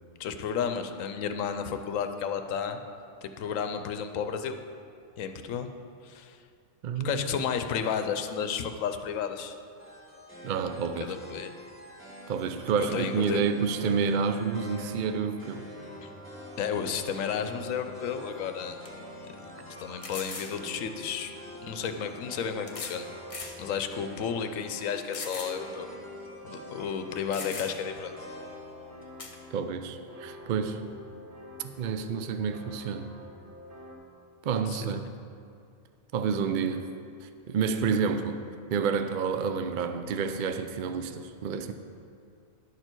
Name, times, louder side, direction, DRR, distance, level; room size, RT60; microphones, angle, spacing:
voice 1, 0.2-2.8 3.2-4.6 5.2-5.7 6.0-6.4 7.0-9.6 11.0-11.5 12.9-13.5 16.0-16.1 16.6-18.8 19.4-21.3 21.6-23.1 23.6-25.9 26.4-28.1 34.7-34.9, left 7 dB, 80° left, 8 dB, 1.0 m, -32 dB
voice 2, 6.8-7.2 10.4-11.2 12.3-15.7 29.5-30.8 31.6-33.1 34.4-35.1 36.1-36.9 37.2-38.4 38.7-41.7, right 6 dB, 75° right, 9 dB, 0.4 m, -29 dB
sound 1, 9.8-29.0, equal, 10° left, 1.9 m, -48 dB
sound 2, 14.6-33.9, equal, 40° right, 1.9 m, -48 dB
sound 3, 18.2-18.3 18.8-18.9 20.0-20.6 21.7-21.8 22.7-23.0 23.3-23.6 24.1-24.2 25.1-25.6 25.9-26.0 26.9-27.0 27.3-27.9 29.2-29.4, left 4 dB, 35° left, 0.7 m, -39 dB
11.5 x 6.6 x 4.5 m, 2.4 s
omnidirectional pair, 1.4 m